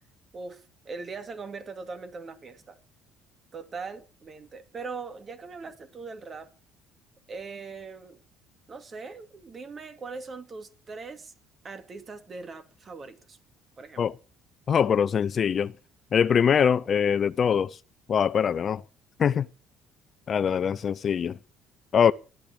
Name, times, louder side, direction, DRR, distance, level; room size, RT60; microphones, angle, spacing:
voice 1, 0.3-2.8 3.5-6.5 7.3-8.2 8.7-11.3 11.6-13.4 13.8-14.1, right 4 dB, 35° right, 2.5 m, -40 dB
voice 2, 14.7-15.7 16.1-17.8 18.1-18.8 19.2-19.5 20.3-21.4 21.9-22.1, left 7 dB, 45° left, 0.7 m, -23 dB
13.5 x 10.0 x 7.1 m
supercardioid pair, 90°, 0 cm